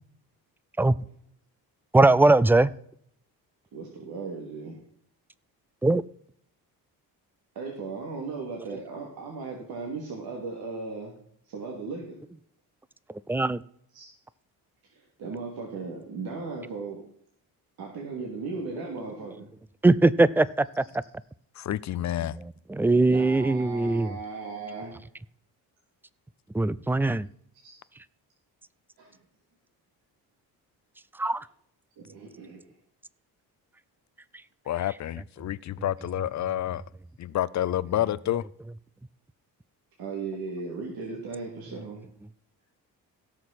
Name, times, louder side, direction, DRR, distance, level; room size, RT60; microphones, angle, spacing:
voice 1, 1.9-2.7 5.8-6.0 13.3-13.6 19.8-20.8 22.2-22.4 22.7-24.1 26.5-27.3 31.2-31.5, right 2 dB, 5° right, 0.3 m, -21 dB
voice 2, 3.7-4.8 7.5-11.1 11.4-12.2 13.9-14.1 14.9-17.0 17.8-19.5 23.1-25.0 27.6-27.8 29.0-29.2 32.0-32.7 40.0-42.1, right 4 dB, 70° right, 2.7 m, -37 dB
voice 3, 21.6-22.4 34.7-36.8 37.2-38.5, left 12 dB, 45° left, 0.5 m, -29 dB
17.0 x 6.6 x 4.2 m
cardioid pair, 95°, 38 cm